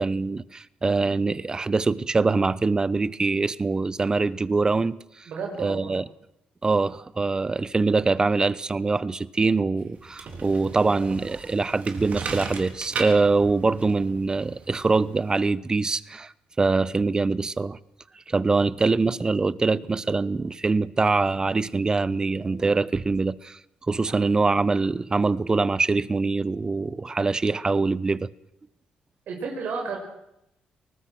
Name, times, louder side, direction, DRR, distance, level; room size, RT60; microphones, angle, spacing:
voice 1, 0.0-5.3 5.6-6.0 6.6-16.3 16.6-17.8 18.3-23.6 23.9-28.3, right 3 dB, 25° right, 0.8 m, -24 dB
voice 2, 5.3-5.9 29.3-30.0, right 5 dB, 75° right, 5.3 m, -31 dB
sound 1, 9.9-15.4, right 4 dB, 55° right, 3.6 m, -37 dB
23.5 x 19.5 x 6.2 m
cardioid pair, 95°, 3 cm